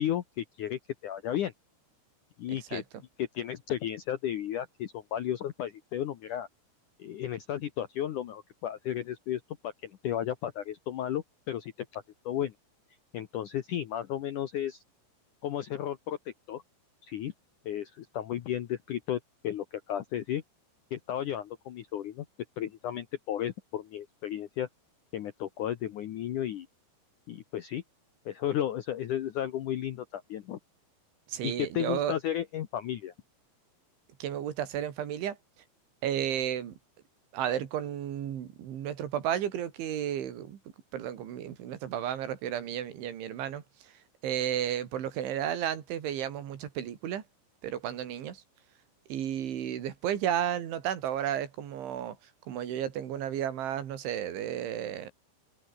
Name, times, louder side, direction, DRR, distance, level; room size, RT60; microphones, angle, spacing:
voice 1, 0.0-1.5 2.4-2.8 3.2-6.5 7.0-12.5 13.1-14.8 15.4-16.6 17.1-17.3 17.7-20.4 20.9-22.3 22.6-24.7 25.1-26.7 27.3-27.8 28.3-30.6 31.4-33.1, left 11 dB, 75° left, 1.9 m, -34 dB
voice 2, 31.3-32.2 34.2-35.4 36.0-36.7 37.3-40.6 40.9-43.6 44.2-47.2 47.6-48.4 49.1-52.2 52.5-55.1, right 10 dB, 85° right, 5.0 m, -33 dB
omnidirectional pair, 5.2 m